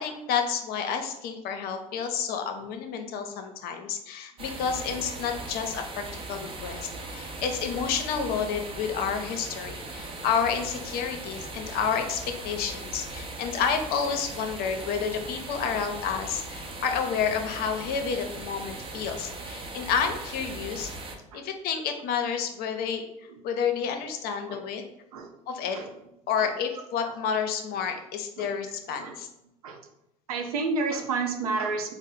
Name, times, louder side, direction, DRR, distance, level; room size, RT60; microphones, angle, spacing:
voice 1, 0.0-20.9 21.3-23.1 23.4-24.8 25.5-25.8 26.3-29.3, left 6 dB, 60° left, 6 dB, 0.7 m, -30 dB
sound 1, 4.4-21.2, right 2 dB, 30° right, 0.8 m, -39 dB
voice 2, 26.4-27.2 28.4-29.2 29.6-29.8 30.3-31.9, right 4 dB, 85° right, 4 dB, 0.6 m, -32 dB
4.1 x 2.1 x 3.7 m, 0.84 s
hypercardioid pair, 75°, 18 cm